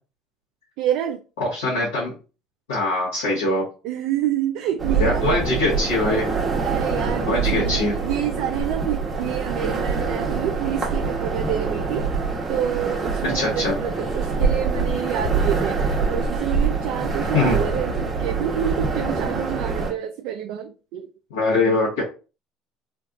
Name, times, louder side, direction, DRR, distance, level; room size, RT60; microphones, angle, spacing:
voice 1, 0.8-1.2 3.8-5.6 6.6-12.1 12.5-21.1, right 11 dB, 65° right, 0.3 m, -28 dB
voice 2, 1.4-2.1 2.7-3.7 5.0-6.3 7.3-7.9 13.3-13.7 17.3-17.6 21.3-22.0, left 2 dB, 85° left, 1.3 m, -22 dB
sound 1, 4.8-19.9, right 4 dB, 30° right, 1.1 m, -25 dB
3.4 x 2.2 x 2.5 m
hypercardioid pair, 70°, 0 cm